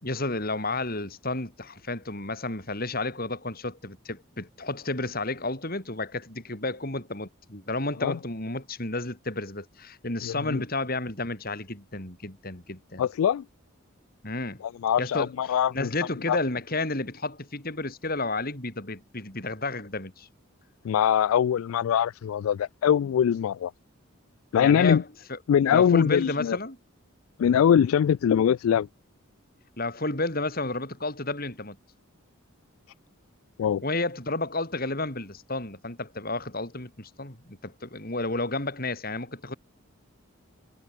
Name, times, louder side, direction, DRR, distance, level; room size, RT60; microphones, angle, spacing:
voice 1, 0.0-13.0 14.2-14.6 15.0-20.3 24.6-25.4 25.7-26.8 29.8-31.8 33.8-39.6, left 2 dB, 45° left, 4.1 m, -31 dB
voice 2, 10.2-10.6 13.0-13.4 14.8-15.9 16.3-16.4 20.8-23.7 24.5-25.0 25.5-26.6 27.4-28.9 33.6-33.8, left 8 dB, 75° left, 0.3 m, -22 dB
head